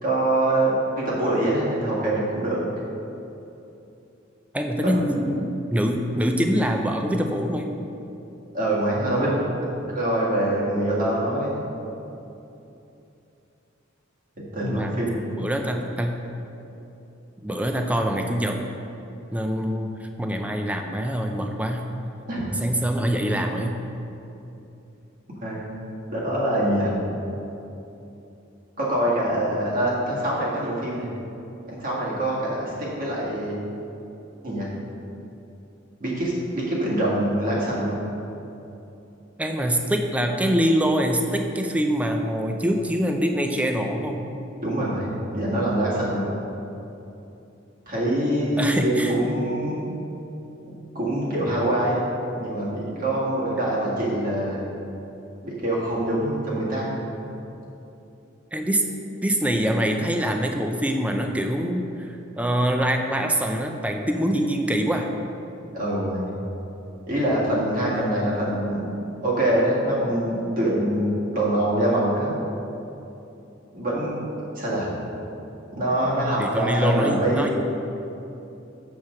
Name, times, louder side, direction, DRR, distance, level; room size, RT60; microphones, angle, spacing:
voice 1, 0.0-2.6 4.8-4.9 8.5-9.5 10.0-11.6 14.5-15.2 22.3-22.4 25.4-25.7 26.1-27.0 28.8-31.1 31.7-33.6 34.4-34.7 36.0-38.0 44.6-46.3 47.9-49.9 50.9-52.0 52.4-54.6 55.4-57.0 65.7-66.4 67.1-68.8 69.2-72.4 73.7-74.2 74.5-74.9 75.7-77.5, right 1 dB, 45° right, -6 dB, 1.8 m, -24 dB
voice 2, 4.5-7.7 14.6-15.0 15.3-16.2 17.4-18.6 19.3-21.9 22.6-23.8 39.4-44.2 48.6-49.1 58.5-58.8 59.2-65.1 76.4-77.5, equal, 5° right, 3 dB, 0.5 m, -24 dB
7.1 x 4.6 x 6.3 m, 2.9 s
head